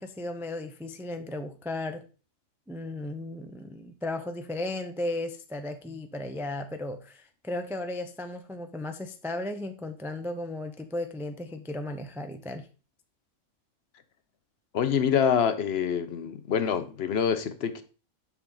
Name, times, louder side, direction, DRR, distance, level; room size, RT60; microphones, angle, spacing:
voice 1, 0.0-2.0 2.7-12.7, left 2 dB, 5° right, 0.3 m, -35 dB
voice 2, 14.7-17.8, left 7 dB, 60° left, 0.8 m, -26 dB
7.1 x 5.6 x 3.8 m
omnidirectional pair, 1.3 m